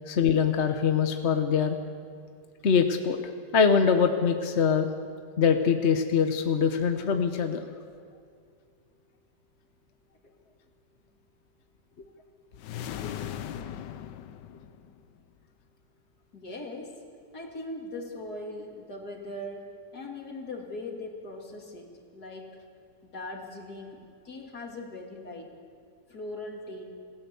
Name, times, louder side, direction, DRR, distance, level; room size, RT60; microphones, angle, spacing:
voice 1, 0.1-1.8 2.6-3.2 3.5-4.9 5.4-7.6, left 6 dB, 45° left, 6 dB, 1.1 m, -23 dB
sound 1, 12.6-15.2, left 10 dB, 90° left, 1.4 m, -38 dB
voice 2, 16.3-17.0 17.3-21.9 22.1-22.6 23.0-25.5 26.1-26.8, left 2 dB, 65° left, 1 dB, 3.3 m, -40 dB
27.5 x 17.0 x 7.0 m, 2.3 s
omnidirectional pair, 1.8 m